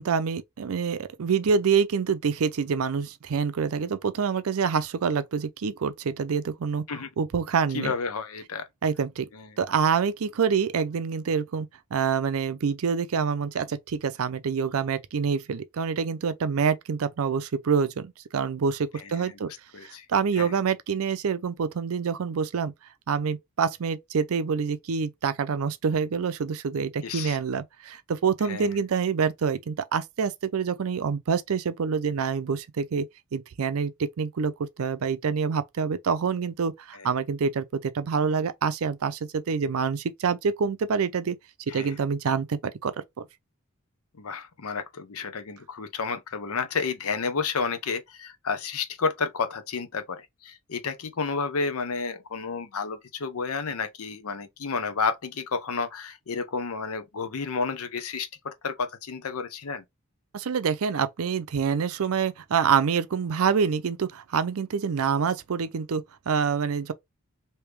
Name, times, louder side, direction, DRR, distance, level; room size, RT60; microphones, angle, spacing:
voice 1, 0.0-6.8 7.2-7.9 8.8-9.3 9.6-19.5 19.8-22.7 23.1-33.1 33.3-33.9 34.2-41.4 41.7-43.3 60.3-66.9, right 6 dB, 70° right, 0.5 m, -26 dB
voice 2, 7.7-8.7 9.3-9.6 19.0-19.4 19.7-20.1 20.3-20.5 27.0-27.4 28.4-28.8 36.9-37.1 41.7-42.0 44.2-59.8, left 5 dB, 75° left, 0.7 m, -31 dB
3.4 x 2.8 x 3.2 m
head